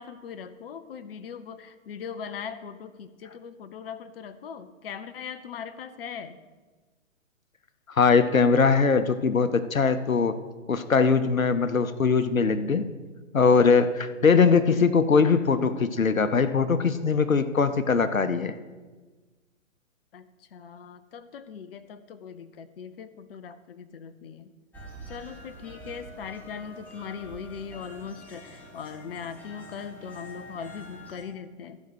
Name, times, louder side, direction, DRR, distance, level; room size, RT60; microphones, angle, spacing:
voice 1, 0.0-6.4 20.1-24.5 25.1-31.8, left 7 dB, 45° left, 11 dB, 0.7 m, -40 dB
voice 2, 8.0-10.4 10.7-12.8 13.3-18.5, left 5 dB, 90° left, 11 dB, 0.8 m, -21 dB
sound 1, 24.7-31.2, equal, 5° left, 1.2 m, -46 dB
14.0 x 5.3 x 6.3 m, 1.3 s
figure-of-eight pair, 125°, 40 cm